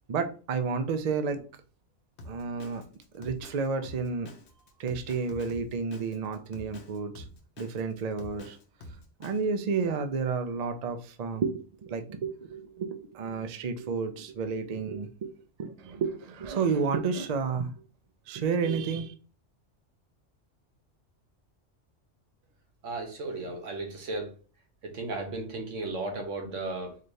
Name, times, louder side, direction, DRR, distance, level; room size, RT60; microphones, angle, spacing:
voice 1, 0.1-1.4 2.3-2.8 3.1-4.3 4.8-7.2 7.6-8.6 9.2-17.7 18.3-19.1, right 5 dB, 55° right, 8 dB, 0.4 m, -31 dB
Drum kit, 2.2-9.4, left 1 dB, 65° left, 1.0 m, -47 dB
voice 2, 22.8-24.4 24.8-27.0, right 2 dB, 80° right, 3 dB, 1.3 m, -35 dB
4.1 x 3.2 x 2.7 m, 0.36 s
omnidirectional pair, 1.3 m